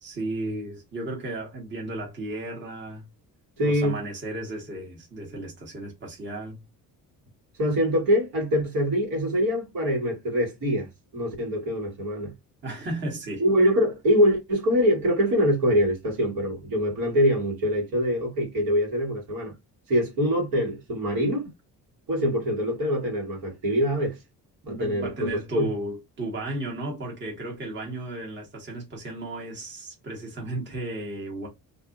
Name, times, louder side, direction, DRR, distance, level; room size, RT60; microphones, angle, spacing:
voice 1, 0.0-3.1 3.6-6.6 12.6-13.4 24.7-31.5, right 2 dB, 30° right, 1.3 m, -34 dB
voice 2, 3.6-4.0 7.6-12.3 13.4-19.5 19.9-21.5 22.1-24.2 24.7-25.7, equal, 70° right, 1.7 m, -24 dB
2.6 x 2.6 x 2.4 m
cardioid pair, 110°, 35 cm